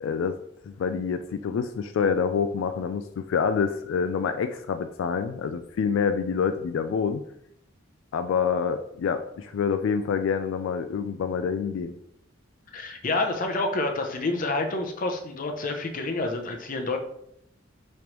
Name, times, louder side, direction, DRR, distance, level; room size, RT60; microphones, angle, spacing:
voice 1, 0.0-0.4 0.7-7.3 8.1-11.9, left 6 dB, 85° left, 8 dB, 0.3 m, -27 dB
voice 2, 12.7-17.0, left 2 dB, 45° left, 4 dB, 0.6 m, -28 dB
5.1 x 3.2 x 2.9 m, 0.74 s
head